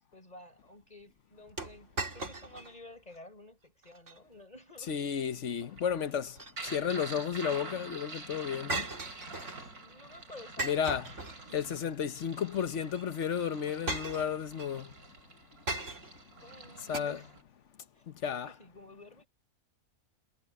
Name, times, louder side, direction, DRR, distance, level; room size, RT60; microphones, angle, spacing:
voice 1, 0.0-5.1 8.7-11.7 15.2-15.3 16.4-17.4 17.8-19.3, left 1 dB, 25° left, 6.1 m, -53 dB
sound 1, 1.6-2.8 3.1-3.2 3.8-4.2 6.1-7.0 8.7-9.7 10.6-11.8 12.9-13.0 13.9-14.7 15.7-16.3 16.9-17.0, right 2 dB, 55° right, 3.5 m, -38 dB
voice 2, 4.9-6.3 6.6-8.8 10.6-11.0 11.5-14.9 16.9-17.2 18.2-18.5, left 8 dB, 55° left, 1.2 m, -32 dB
sound 2, 5.6-17.4, right 3 dB, 80° right, 4.4 m, -47 dB
omnidirectional pair, 1.5 m